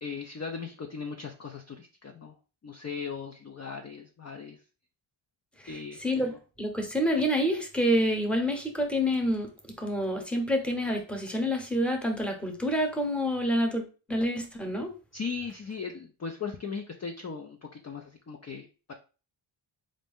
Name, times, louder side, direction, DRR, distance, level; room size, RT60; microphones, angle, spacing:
voice 1, 0.0-2.3 2.6-4.6 5.7-6.2 15.1-18.9, left 5 dB, 35° left, 4 dB, 0.4 m, -38 dB
voice 2, 5.6-9.5 9.8-14.9, equal, ahead, 3 dB, 0.8 m, -28 dB
4.2 x 2.6 x 3.5 m, 0.35 s
wide cardioid pair, 100°, 49 cm